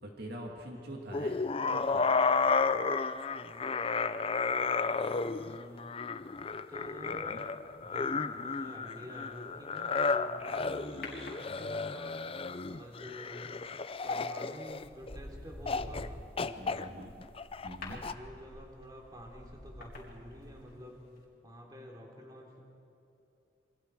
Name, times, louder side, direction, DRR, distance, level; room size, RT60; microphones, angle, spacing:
voice 1, 0.0-1.4 1.7-2.1 7.0-7.4 16.6-17.1 17.6-18.0, right 1 dB, 60° right, 1 dB, 2.3 m, -44 dB
voice 2, 0.7-1.1 5.2-5.9 6.7-7.4 7.8-12.1 12.7-13.5 14.0-17.1 17.8-21.0 21.4-22.6, equal, 20° right, 0 dB, 3.3 m, -49 dB
sound 1, 1.1-15.2 15.7-16.1 16.4-18.1, left 4 dB, 30° left, 0.6 m, -32 dB
sound 2, 11.0-12.1 13.9-14.2 14.7-20.9 21.2-21.3, left 2 dB, 55° left, 4.1 m, -48 dB
27.5 x 24.5 x 4.7 m, 2.8 s
head